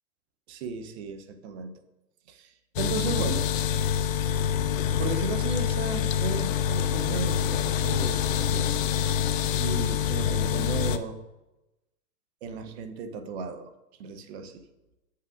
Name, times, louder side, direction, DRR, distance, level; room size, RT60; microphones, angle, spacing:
voice 1, 0.5-1.8 2.3-3.5 5.0-8.7 9.6-11.2 12.4-13.7 14.0-14.6, right 4 dB, 40° right, 8 dB, 0.8 m, -35 dB
sound 1, 2.8-11.0, left 8 dB, 55° left, 0.6 m, -26 dB
8.4 x 7.3 x 2.5 m, 1.0 s
hypercardioid pair, 135°, 49 cm